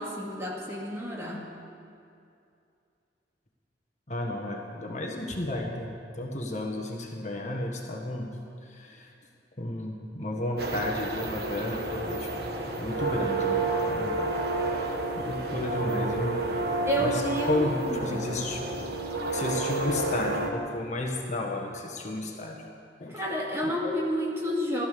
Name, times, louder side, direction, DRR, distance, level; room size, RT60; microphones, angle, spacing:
voice 1, 0.0-1.5 16.8-18.3 23.1-24.9, equal, 15° right, -3 dB, 2.3 m, -30 dB
voice 2, 4.1-8.3 8.6-9.1 9.6-12.3 12.8-14.1 14.6-16.4 17.0-18.7 19.3-22.7 23.0-23.2 23.6-24.0, left 1 dB, 40° left, 1 dB, 1.5 m, -33 dB
sound 1, 10.6-20.5, right 2 dB, 60° right, 1.4 m, -30 dB
16.0 x 13.0 x 6.9 m, 2.5 s
head